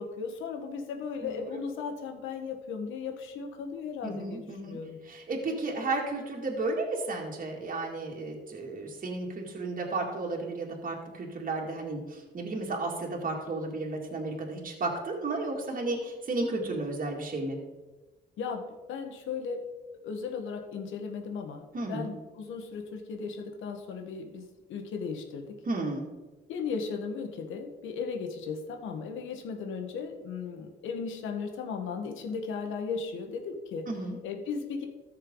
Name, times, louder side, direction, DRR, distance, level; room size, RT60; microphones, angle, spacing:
voice 1, 0.0-5.0 18.4-19.6 20.0-25.6 26.5-33.8 34.2-34.9, left 5 dB, 85° left, 4 dB, 1.4 m, -36 dB
voice 2, 4.0-4.8 5.1-17.6 21.7-22.1 25.7-26.0 33.9-34.2, right 2 dB, 45° right, -1 dB, 2.3 m, -33 dB
14.0 x 6.5 x 3.8 m, 1.2 s
cardioid pair, 90°, 20 cm